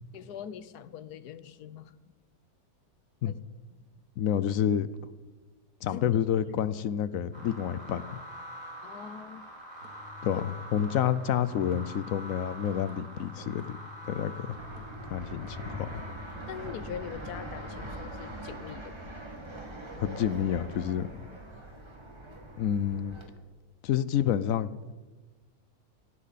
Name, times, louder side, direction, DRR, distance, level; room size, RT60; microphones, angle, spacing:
voice 1, 0.1-1.9 3.3-3.4 5.9-6.0 8.8-9.4 16.5-18.9, left 8 dB, 90° left, 14 dB, 1.3 m, -42 dB
voice 2, 4.2-4.9 5.8-8.2 10.2-10.4 10.7-13.8 14.1-14.6 15.1-16.0 20.0-21.3 22.6-23.2 23.8-24.7, left 9 dB, 70° left, 16 dB, 1.0 m, -29 dB
sound 1, 7.3-18.8, right 1 dB, 15° left, 5.0 m, -46 dB
sound 2, 9.8-18.0, left 3 dB, 70° right, 2.3 m, -48 dB
Fixed-wing aircraft airplane, 14.6-23.3, right 1 dB, 20° right, 1.8 m, -43 dB
17.5 x 16.5 x 4.1 m, 1.3 s
omnidirectional pair, 1.6 m